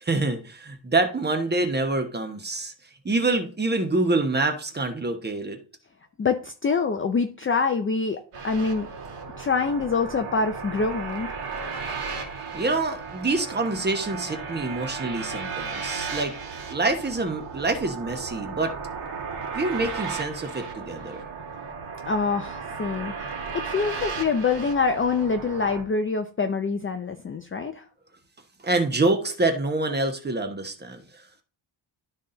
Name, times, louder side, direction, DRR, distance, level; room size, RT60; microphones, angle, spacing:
voice 1, 0.0-2.7 3.0-5.6 11.8-12.0 12.5-16.4 16.7-18.7 19.5-21.2 28.6-31.0, right 2 dB, 20° right, 1.1 m, -26 dB
voice 2, 6.2-8.9 9.4-11.3 22.1-27.8, left 4 dB, 25° left, 0.5 m, -25 dB
sound 1, 8.3-25.8, right 5 dB, 80° right, 2.4 m, -35 dB
12.0 x 4.2 x 3.8 m
wide cardioid pair, 165°, 50 cm